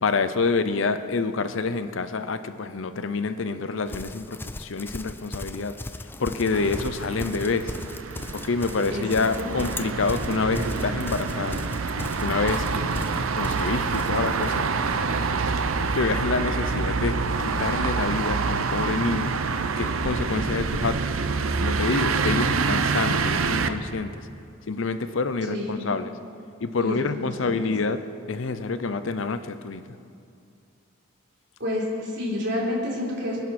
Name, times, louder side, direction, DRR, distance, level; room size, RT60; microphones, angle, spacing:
voice 1, 0.0-5.7 6.0-7.7 8.3-11.6 12.2-12.7 13.3-14.7 15.9-19.3 19.8-21.2 21.6-24.3 24.7-26.1 26.6-28.0 28.3-29.8, left 4 dB, 70° left, 11 dB, 0.6 m, -27 dB
Livestock farm animals working animals, 3.9-15.1, left 2 dB, 10° left, 0.4 m, -37 dB
sound 1, 6.5-23.7, right 4 dB, 90° right, 0.7 m, -26 dB
voice 2, 8.9-9.5 25.5-25.8 26.8-27.7 31.6-33.4, left 1 dB, 55° right, -4 dB, 3.7 m, -29 dB
23.0 x 10.5 x 4.3 m, 2.4 s
head